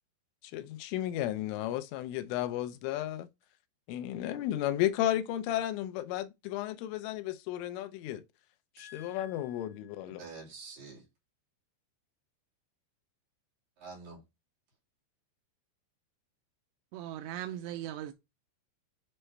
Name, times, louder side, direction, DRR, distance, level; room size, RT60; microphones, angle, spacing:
voice 1, 0.4-3.3 3.9-8.2 8.8-10.2, left 13 dB, 80° left, 3.1 m, -33 dB
voice 2, 8.8-9.9 10.2-11.1 13.8-14.2, right 2 dB, 50° right, 3.9 m, -48 dB
voice 3, 16.9-18.1, right 12 dB, 80° right, 2.7 m, -38 dB
8.9 x 3.4 x 3.3 m
omnidirectional pair, 5.6 m